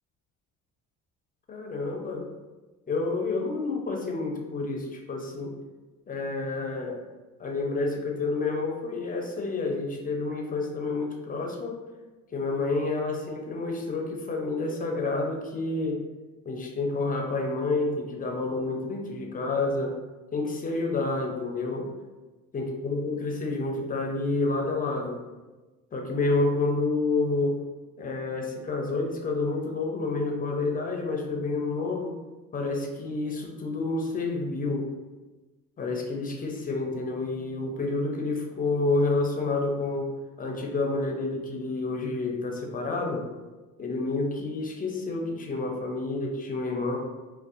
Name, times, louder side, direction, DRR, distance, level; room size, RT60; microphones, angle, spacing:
voice 1, 1.5-2.3 2.9-5.5 6.1-7.0 7.4-11.8 12.3-16.0 16.5-20.0 20.3-21.9 22.5-25.2 25.9-27.6 28.0-32.1 32.5-34.9 35.8-40.1 40.4-43.3 43.8-47.0, left 3 dB, 25° left, 1 dB, 0.5 m, -29 dB
2.6 x 2.0 x 2.4 m, 1.2 s
supercardioid pair, 80°, 34 cm